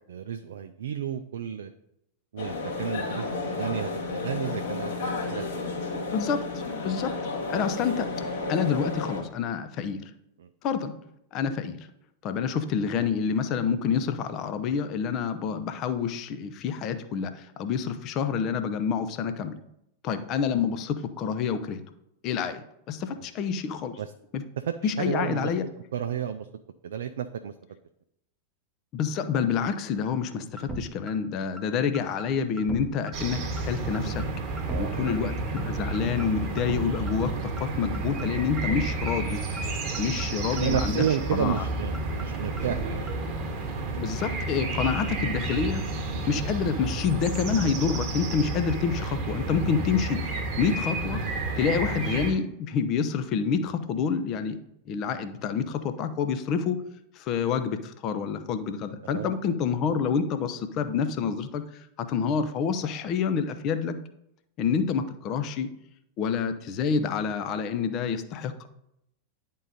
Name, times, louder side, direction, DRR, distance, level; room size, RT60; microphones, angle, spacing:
voice 1, 0.1-1.7 2.3-5.6 10.4-10.5 24.0-24.1 24.7-25.5 25.9-26.5 26.8-27.5 34.7-35.2 40.5-43.1 59.1-59.3, right 8 dB, 60° right, 7 dB, 0.3 m, -32 dB
sound 1, 2.4-9.2, left 3 dB, 60° left, 1.7 m, -32 dB
voice 2, 6.1-7.2 7.5-8.1 8.5-10.1 10.6-10.9 11.3-11.9 12.2-19.6 20.0-21.8 22.2-24.0 24.3-24.4 24.8-25.6 28.9-34.2 34.8-39.4 40.0-41.0 41.3-41.6 44.0-45.8 46.3-51.2 51.6-54.6 54.9-56.8 57.2-61.6 62.0-64.0 64.6-65.7 66.2-68.7, left 6 dB, 35° left, 10 dB, 0.6 m, -28 dB
sound 2, 30.6-30.8 31.1-31.2 31.6-31.7 31.9-32.3 32.6-32.8 33.1-33.2 33.6-33.7 33.9-34.3 34.6-34.8 35.1-35.2 35.6-35.7 35.9-36.3 36.6-36.8 37.1-37.2 37.6-37.7 37.9-38.3 38.6-38.8 39.1-39.2 39.6-39.7 39.9-40.3 40.6-40.8 41.1-41.2 41.6-41.7 41.9-42.3 42.6-42.8 43.1-43.2, right 1 dB, 10° right, 0.9 m, -37 dB
sound 3, 33.1-52.3, right 2 dB, 35° right, 1.3 m, -31 dB
10.0 x 3.7 x 4.0 m, 0.79 s
figure-of-eight pair, 90°, 0 cm